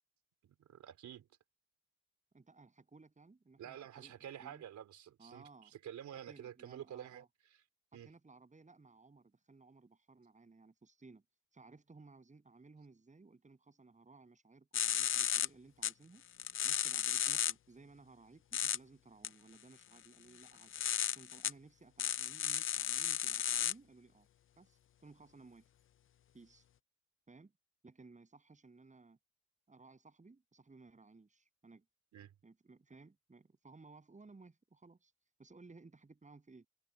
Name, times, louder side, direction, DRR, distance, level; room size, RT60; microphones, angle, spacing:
voice 1, 0.4-1.3 3.6-7.2 7.9-8.1 32.1-32.3, right 10 dB, 70° right, 3.9 m, -49 dB
voice 2, 2.3-4.1 4.4-4.6 5.2-5.7 6.3-7.3 7.9-11.2 11.5-16.2 16.6-20.7 21.1-24.3 24.6-25.7 26.3-26.7 27.3-27.5 27.8-29.2 29.7-31.8 32.4-35.1 35.4-36.7, right 3 dB, 25° right, 7.5 m, -59 dB
sound 1, 14.7-15.5 15.8-15.9 16.4-17.5 18.5-18.8 19.2-19.3 20.4-21.5 22.0-23.7, left 10 dB, 45° left, 0.5 m, -34 dB
cardioid pair, 90°, 30 cm